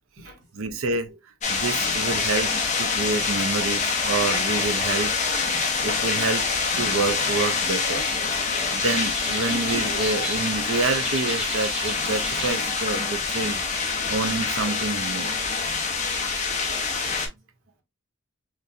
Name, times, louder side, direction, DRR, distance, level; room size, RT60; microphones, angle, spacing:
voice 1, 0.5-1.1 1.5-2.5 2.8-5.2 5.4-5.5 5.8-6.5 6.8-8.0 8.7-15.3, right 3 dB, 85° right, 0.6 m, -28 dB
sound 1, 1.4-17.3, left 4 dB, 35° left, 0.8 m, -26 dB
sound 2, 6.9-12.5, right 1 dB, 5° right, 0.8 m, -36 dB
voice 2, 7.2-7.9 8.2-8.5 10.2-10.3 16.3-16.6, right 2 dB, 65° right, 1.4 m, -46 dB
4.4 x 2.5 x 2.5 m
head